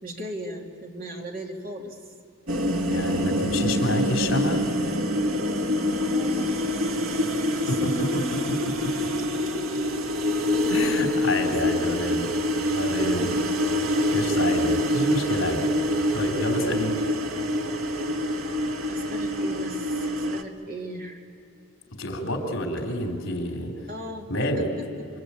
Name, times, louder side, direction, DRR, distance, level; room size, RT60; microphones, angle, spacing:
voice 1, 0.0-2.0 6.0-6.7 7.4-8.4 11.4-11.6 13.2-13.6 18.9-21.2 22.8-23.0 23.9-24.3 24.6-25.1, right 1 dB, 45° right, 1 dB, 2.8 m, -37 dB
sound 1, 2.5-20.4, left 1 dB, 80° right, 1.6 m, -25 dB
voice 2, 2.8-4.6 7.7-8.4 8.8-8.9 10.7-12.3 12.7-13.4 14.1-15.6 16.1-17.0 22.0-23.7 24.3-24.7, left 1 dB, 65° left, 2 dB, 3.9 m, -28 dB
27.5 x 25.0 x 8.6 m, 2.6 s
head